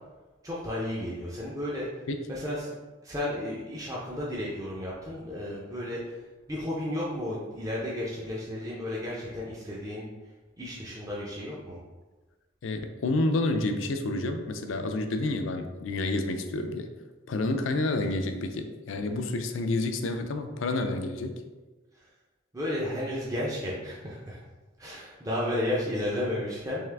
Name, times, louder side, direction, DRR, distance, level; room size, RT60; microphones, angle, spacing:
voice 1, 0.4-1.9 2.3-2.7 3.0-6.0 6.5-10.1 10.6-11.8 22.5-24.4 24.8-26.9, left 1 dB, 15° right, -5 dB, 0.5 m, -33 dB
voice 2, 12.6-16.9 17.3-21.4, left 2 dB, 80° left, 6 dB, 0.4 m, -29 dB
3.6 x 3.2 x 3.3 m, 1.2 s
head